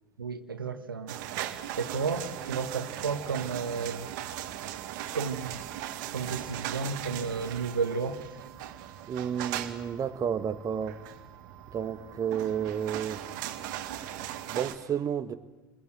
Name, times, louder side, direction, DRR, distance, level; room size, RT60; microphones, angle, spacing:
voice 1, 0.2-1.2 1.8-4.1 5.1-5.6 6.1-8.4, right 5 dB, 85° right, 1.6 m, -32 dB
sound 1, 1.1-14.8, right 12 dB, 60° right, 1.9 m, -39 dB
voice 2, 9.1-11.0 11.7-13.2 14.5-15.3, right 8 dB, 30° right, 1.4 m, -31 dB
29.0 x 21.5 x 7.9 m
figure-of-eight pair, 85°, 11 cm